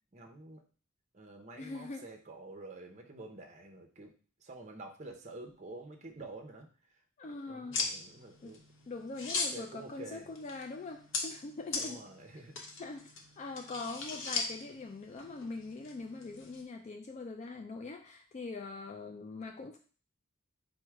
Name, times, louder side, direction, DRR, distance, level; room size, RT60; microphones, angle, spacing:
voice 1, 0.1-0.6 1.1-4.1 4.4-6.7 7.2-8.6 9.3-10.3 11.8-12.6, right 2 dB, 35° right, 3 dB, 0.7 m, -49 dB
voice 2, 1.6-2.1 7.2-7.9 8.4-8.6 8.9-12.1 12.8-13.1 13.4-19.8, left 3 dB, 35° left, 4 dB, 0.3 m, -43 dB
sound 1, 7.7-16.6, left 4 dB, 70° left, 0.9 m, -40 dB
4.5 x 2.1 x 4.6 m, 0.39 s
head